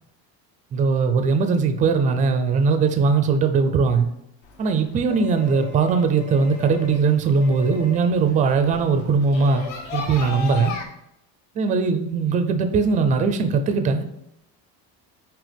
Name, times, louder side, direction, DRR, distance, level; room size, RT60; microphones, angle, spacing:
voice 1, 0.7-4.1 4.6-10.7 11.6-14.0, right 5 dB, 20° right, 8 dB, 0.4 m, -20 dB
sound 1, 4.4-10.8, left 5 dB, 70° left, 1.7 m, -36 dB
6.3 x 4.7 x 5.1 m, 0.80 s
cardioid pair, 175°, 41 cm